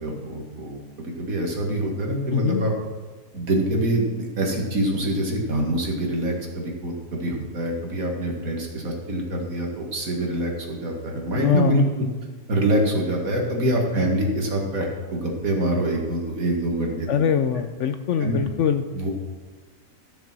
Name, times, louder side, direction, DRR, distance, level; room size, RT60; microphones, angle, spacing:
voice 1, 0.0-2.7 3.3-11.8 12.5-14.9 15.1-17.1 18.2-18.4 18.9-19.1, right 1 dB, 65° right, 0 dB, 2.3 m, -25 dB
voice 2, 11.3-11.8 17.1-18.9, left 8 dB, 65° left, 9 dB, 0.8 m, -23 dB
13.5 x 6.7 x 6.0 m, 1.3 s
omnidirectional pair, 1.6 m